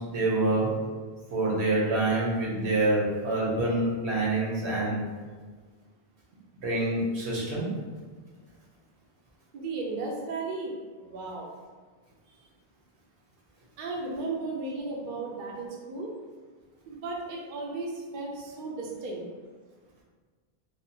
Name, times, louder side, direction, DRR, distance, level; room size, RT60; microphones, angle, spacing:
voice 1, 0.1-0.7 1.3-5.0 6.6-7.7, right 2 dB, 80° right, -5 dB, 1.2 m, -26 dB
voice 2, 9.5-10.7 11.0-11.5 13.8-16.1 16.9-19.2, right 3 dB, 60° right, -2 dB, 0.6 m, -35 dB
3.4 x 2.3 x 2.7 m, 1.5 s
omnidirectional pair, 1.1 m